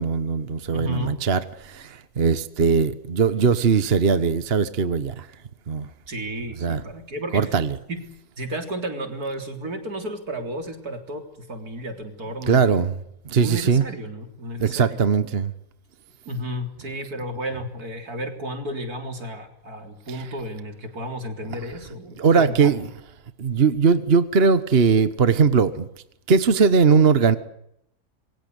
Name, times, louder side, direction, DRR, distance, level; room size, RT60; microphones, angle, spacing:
voice 1, 0.0-5.3 5.7-5.9 6.6-6.8 7.3-7.7 12.5-13.0 13.2-13.8 14.6-15.5 20.1-20.2 22.2-22.8 23.4-25.9 26.3-27.4, right 5 dB, 40° right, 12 dB, 1.3 m, -20 dB
voice 2, 0.7-1.2 6.1-7.5 7.9-8.0 8.4-12.8 13.4-15.0 16.3-22.7, equal, 70° right, 6 dB, 4.1 m, -33 dB
27.0 x 23.0 x 8.1 m, 0.75 s
omnidirectional pair, 1.6 m